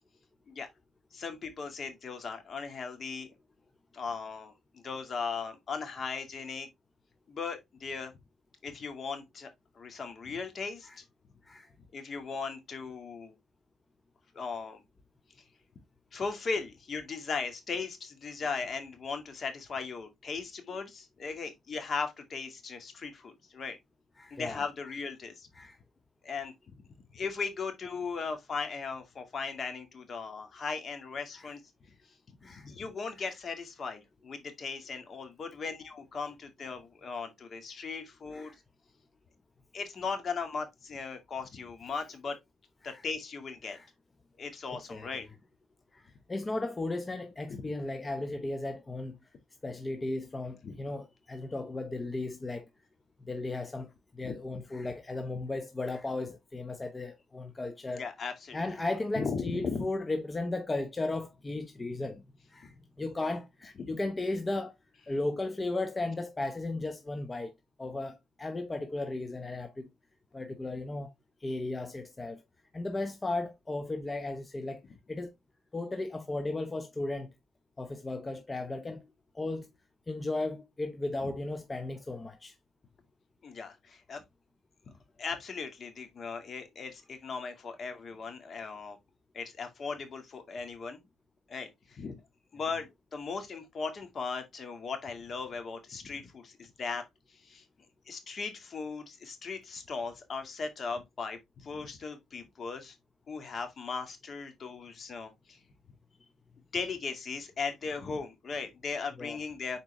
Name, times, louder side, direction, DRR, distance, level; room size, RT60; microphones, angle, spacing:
voice 1, 1.1-3.3 3.9-6.7 7.3-8.1 8.6-11.0 11.9-13.4 14.3-14.8 16.1-23.8 24.3-25.7 26.2-26.5 27.1-31.6 32.4-38.5 39.7-42.4 42.8-43.8 44.4-45.3 47.5-47.6 50.6-50.8 54.2-54.3 57.9-58.6 59.1-59.9 62.6-62.7 63.8-63.9 81.2-81.3 83.4-84.2 84.9-89.0 89.3-91.0 91.5-92.2 92.5-97.6 98.1-103.0 103.3-105.6 106.7-109.8, left 5 dB, 45° left, 2.1 m, -38 dB
voice 2, 24.2-24.6 25.6-25.8 31.3-31.5 32.4-32.7 33.2-33.3 38.3-38.6 42.8-43.0 43.6-43.9 44.7-45.1 45.9-49.2 49.6-52.7 53.3-58.0 58.5-62.2 62.5-64.7 65.1-67.5 67.8-69.9 70.3-71.1 71.4-72.4 72.7-74.8 75.1-75.3 75.7-77.3 77.8-79.1 79.3-79.7 80.1-82.5 109.2-109.4, left 2 dB, 25° left, 0.8 m, -35 dB
7.2 x 4.4 x 3.4 m
cardioid pair, 90°, 0 cm